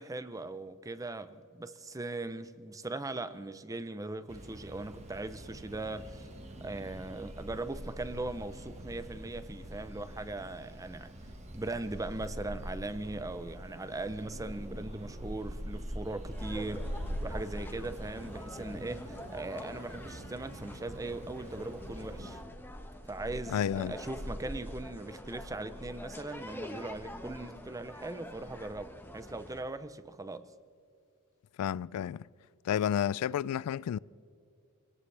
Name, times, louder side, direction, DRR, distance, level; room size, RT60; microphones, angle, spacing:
voice 1, 0.0-6.3 6.6-11.1 11.5-22.4 23.1-30.5, right 2 dB, 15° right, 0.6 m, -39 dB
sound 1, 4.3-22.4, equal, 30° right, 1.5 m, -43 dB
sound 2, 16.3-29.6, equal, 10° left, 1.3 m, -45 dB
voice 2, 23.5-23.9 31.6-32.3 32.6-34.0, left 9 dB, 80° left, 0.3 m, -31 dB
24.0 x 18.0 x 3.3 m
head